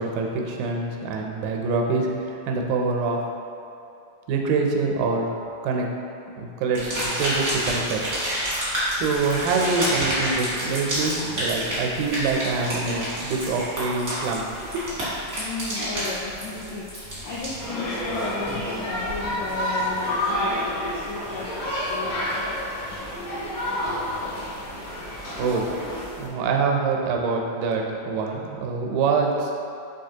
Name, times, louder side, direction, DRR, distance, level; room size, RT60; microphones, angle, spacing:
voice 1, 0.0-3.2 4.3-5.3 5.6-5.9 6.4-8.1 9.0-14.4 14.7-14.8 25.4-25.8 26.2-29.5, right 4 dB, 90° right, 1 dB, 2.2 m, -25 dB
sound 1, 6.7-26.3, equal, 65° right, 0.8 m, -31 dB
voice 2, 15.4-21.5 21.9-22.4 22.9-23.0 23.9-24.2, left 3 dB, 85° left, -7 dB, 1.7 m, -34 dB
sound 2, 17.6-26.1, left 1 dB, 55° left, 1.3 m, -29 dB
5.4 x 3.2 x 2.8 m, 2.6 s
omnidirectional pair, 3.9 m